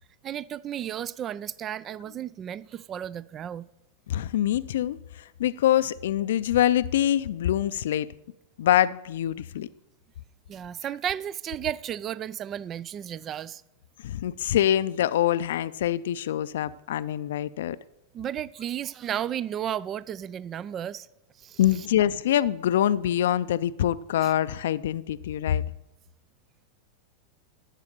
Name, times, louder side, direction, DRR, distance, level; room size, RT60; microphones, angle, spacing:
voice 1, 0.2-3.7 10.5-13.6 18.1-21.1 21.4-21.9 24.2-24.3, right 10 dB, 35° right, 0.3 m, -33 dB
voice 2, 4.1-8.1 8.6-9.7 14.0-17.8 21.6-25.6, left 11 dB, 70° left, 0.4 m, -25 dB
11.5 x 7.4 x 6.6 m
hypercardioid pair, 105°, 0 cm